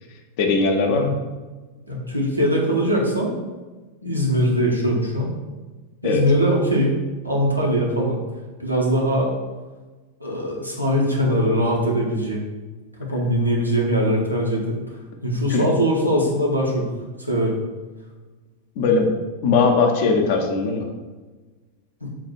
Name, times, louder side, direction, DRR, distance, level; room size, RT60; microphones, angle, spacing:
voice 1, 0.4-1.1 6.0-6.2 15.5-15.6 18.8-19.1 19.4-20.9, left 4 dB, 50° left, 3 dB, 0.6 m, -19 dB
voice 2, 1.9-3.3 4.0-5.3 6.0-7.0 7.2-8.2 8.6-9.3 10.2-12.4 13.0-14.8 15.2-16.9 17.3-17.6 22.0-22.1, equal, 90° right, -3 dB, 0.8 m, -21 dB
3.8 x 2.4 x 4.4 m, 1.3 s
figure-of-eight pair, 90°, 0 cm